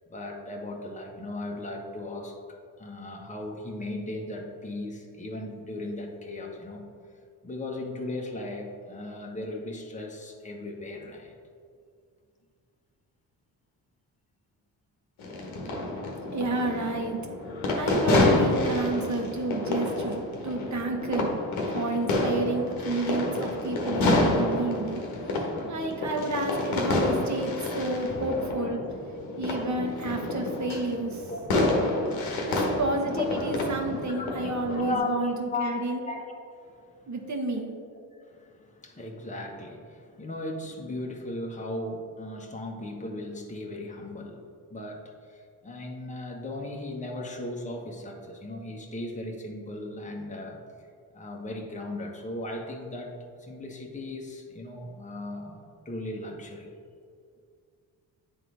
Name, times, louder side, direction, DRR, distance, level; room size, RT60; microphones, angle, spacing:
voice 1, 0.1-2.4 2.8-6.9 7.4-11.3 31.3-31.4 33.2-33.5 34.2-37.1 38.3-44.4 44.7-50.6 51.1-56.7, left 2 dB, 15° left, 0 dB, 1.0 m, -37 dB
sound 1, 15.2-35.0, left 2 dB, 70° left, 1.2 m, -28 dB
voice 2, 16.3-17.2 17.7-21.4 21.7-25.0 25.7-28.8 29.4-31.3 32.5-36.0 37.1-37.7, right 2 dB, 35° right, 2 dB, 1.2 m, -30 dB
9.0 x 3.8 x 3.3 m, 2.2 s
hypercardioid pair, 45°, 49 cm